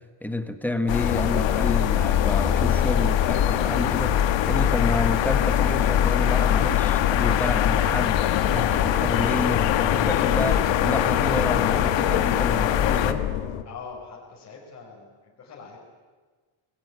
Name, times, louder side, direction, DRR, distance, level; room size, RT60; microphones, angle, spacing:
voice 1, 0.2-4.2 4.4-13.2, left 1 dB, 5° left, 8 dB, 1.4 m, -29 dB
sound 1, 0.9-13.1, left 11 dB, 65° left, 1.6 m, -23 dB
sound 2, 1.1-13.6, left 10 dB, 90° left, 1.8 m, -28 dB
voice 2, 13.6-15.8, left 5 dB, 35° left, -3 dB, 4.6 m, -42 dB
25.0 x 20.0 x 9.5 m, 1.4 s
cardioid pair, 175°, 49 cm